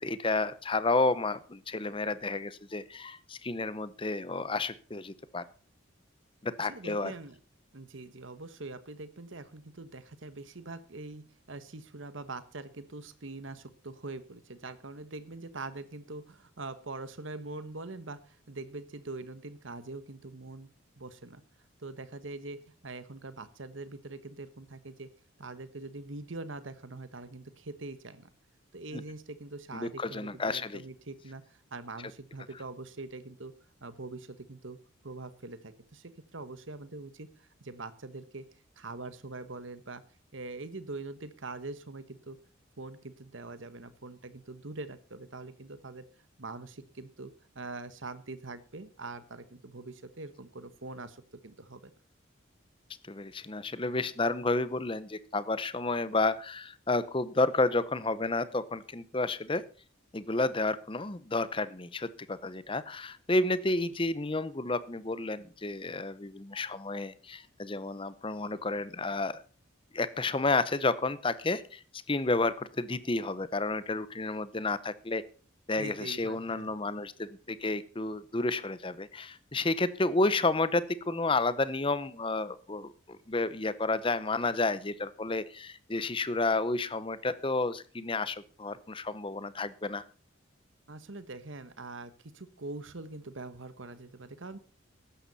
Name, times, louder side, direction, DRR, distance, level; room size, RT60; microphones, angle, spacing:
voice 1, 0.0-5.4 6.4-7.1 28.9-29.0 29.7-30.8 53.1-59.6 60.1-69.4 69.9-71.8 72.1-75.2 75.7-90.0, left 2 dB, 25° left, 16 dB, 0.7 m, -31 dB
voice 2, 6.6-7.4 7.7-20.7 21.0-21.4 21.8-25.1 25.4-28.3 28.7-33.5 33.8-34.8 35.0-38.4 38.8-40.0 40.3-42.4 42.8-46.0 46.4-51.9 75.8-76.7 90.9-94.6, right 3 dB, 65° right, 13 dB, 1.2 m, -43 dB
14.5 x 11.5 x 4.1 m, 0.39 s
head